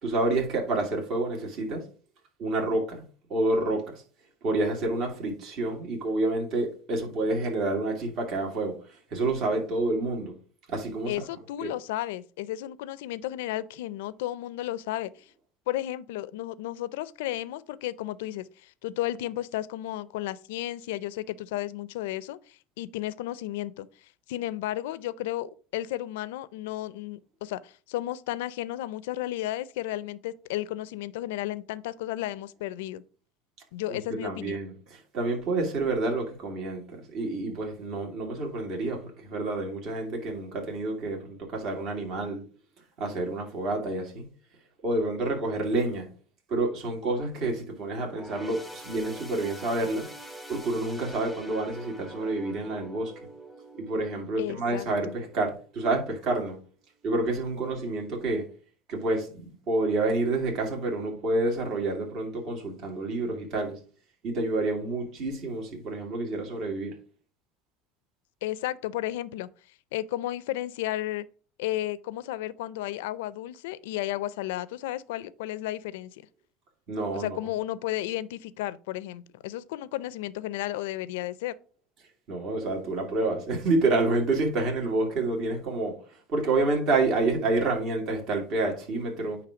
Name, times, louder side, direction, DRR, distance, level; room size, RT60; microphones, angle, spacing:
voice 1, 0.0-1.8 2.4-3.0 3.3-4.0 4.4-8.8 9.1-10.3 10.7-11.2 11.6-11.7 34.2-42.4 43.0-44.2 44.8-46.1 46.5-50.1 50.5-53.1 53.8-56.6 57.0-58.4 58.9-63.8 64.2-66.9 76.9-77.4 82.3-86.0 86.3-89.4, right 2 dB, 50° right, 2.4 m, -28 dB
voice 2, 11.1-15.1 15.7-23.9 24.3-33.0 33.7-34.6 54.4-55.2 68.4-69.5 69.9-71.3 71.6-76.2 77.1-81.5, left 14 dB, 85° left, 0.5 m, -33 dB
sound 1, 48.0-55.7 56.1-56.3 57.2-57.3, right 1 dB, 5° right, 1.1 m, -45 dB
9.3 x 3.1 x 5.0 m
supercardioid pair, 125°, 0 cm